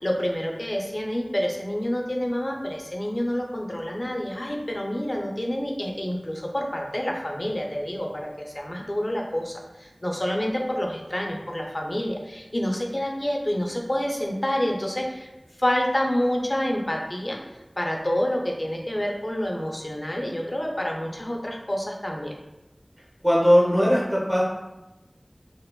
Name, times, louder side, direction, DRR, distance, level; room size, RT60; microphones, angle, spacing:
voice 1, 0.0-15.3 15.6-17.4 17.8-22.3, equal, 45° left, 0 dB, 0.4 m, -28 dB
voice 2, 23.2-24.4, equal, 10° right, -5 dB, 0.7 m, -19 dB
2.8 x 2.1 x 2.2 m, 0.98 s
wide cardioid pair, 40°, 0 cm